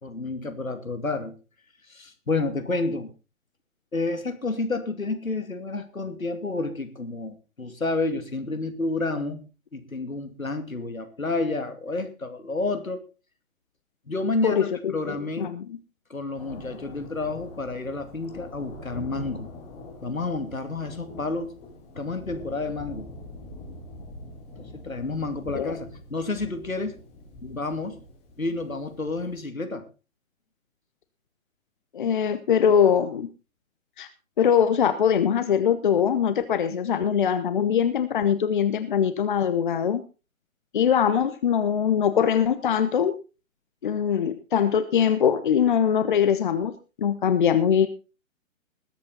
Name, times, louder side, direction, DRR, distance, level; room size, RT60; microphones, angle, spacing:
voice 1, 0.0-1.4 1.9-3.1 3.9-9.4 9.7-13.0 14.1-15.5 16.1-19.5 20.0-21.6 21.9-23.1 24.6-27.0 27.4-28.0 28.4-29.9, left 3 dB, 75° left, 8 dB, 2.7 m, -30 dB
voice 2, 14.4-15.8 25.5-25.7 31.9-33.3 34.0-34.1 34.4-40.0 40.7-43.2 43.8-46.7 47.0-47.9, left 8 dB, 35° left, 11 dB, 0.9 m, -22 dB
Thunder, 16.4-29.4, left 2 dB, 15° left, 4.1 m, -44 dB
20.5 x 8.7 x 4.1 m, 0.32 s
figure-of-eight pair, 135°, 41 cm